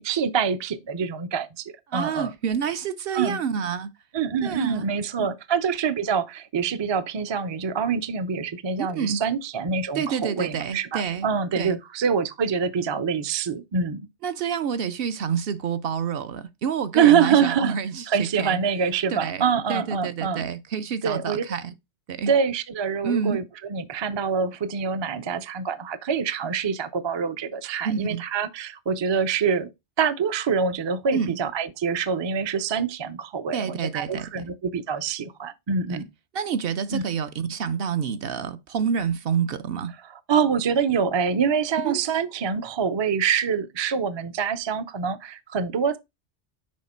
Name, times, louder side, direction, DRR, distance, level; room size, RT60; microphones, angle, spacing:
voice 1, 0.0-2.3 3.1-3.4 4.1-14.1 16.9-17.7 18.1-20.4 21.0-21.4 22.3-23.4 23.7-29.7 30.0-36.1 36.9-37.0 40.3-46.0, right 6 dB, 45° right, 0.3 m, -25 dB
voice 2, 1.9-3.9 4.4-4.9 5.2-5.3 8.8-9.2 9.9-11.3 11.6-11.8 14.2-18.6 19.1-19.4 19.7-21.8 22.1-22.3 23.0-23.4 27.8-28.2 31.1-31.4 33.5-34.5 35.9-36.0 36.3-39.9 41.8-42.0, right 7 dB, 65° right, 0.7 m, -28 dB
6.4 x 4.3 x 4.2 m
omnidirectional pair, 1.2 m